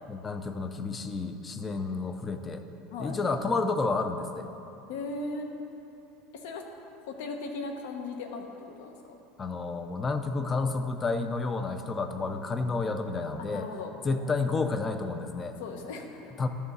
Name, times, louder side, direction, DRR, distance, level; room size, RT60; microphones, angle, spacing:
voice 1, 0.1-2.6 3.0-4.5 9.4-13.7 14.0-15.6 16.4-16.5, left 3 dB, 15° left, 8 dB, 0.4 m, -30 dB
voice 2, 4.9-5.5 6.3-6.6 7.0-8.5 8.8-9.2 13.4-14.4 15.6-16.3, left 3 dB, 75° left, 3 dB, 1.0 m, -38 dB
11.0 x 3.7 x 6.7 m, 2.8 s
cardioid pair, 175°, 0 cm